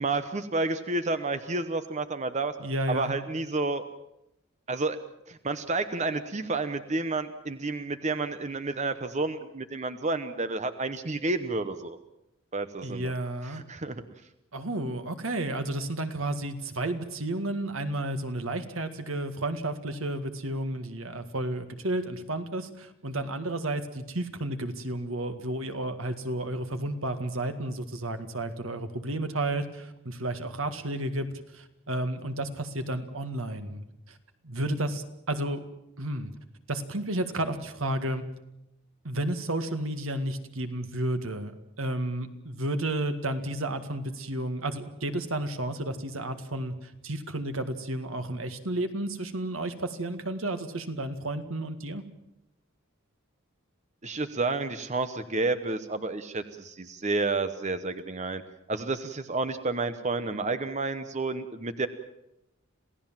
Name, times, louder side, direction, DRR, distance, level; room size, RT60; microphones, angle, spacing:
voice 1, 0.0-2.5 2.9-3.9 4.7-5.0 5.3-12.0 12.5-13.1 13.5-14.0 54.0-58.4 58.7-61.9, right 3 dB, 35° right, 10 dB, 0.9 m, -30 dB
voice 2, 2.6-3.1 12.8-13.6 14.5-31.3 31.5-33.8 34.1-34.2 34.4-35.7 36.0-36.3 36.7-38.2 39.0-52.0, right 1 dB, 80° right, 8 dB, 1.9 m, -32 dB
27.0 x 17.0 x 7.5 m, 0.87 s
head